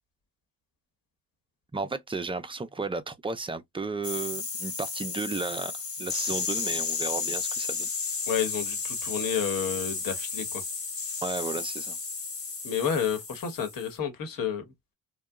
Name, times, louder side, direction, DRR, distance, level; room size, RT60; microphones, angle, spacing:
voice 1, 1.7-5.7 6.0-7.9 11.2-12.0, right 3 dB, 15° right, 0.5 m, -33 dB
sound 1, 4.0-13.9, left 5 dB, 35° left, 1.4 m, -33 dB
voice 2, 8.3-10.4 12.6-14.6, left 7 dB, 55° left, 1.3 m, -30 dB
2.7 x 2.3 x 2.3 m
supercardioid pair, 65°, 40 cm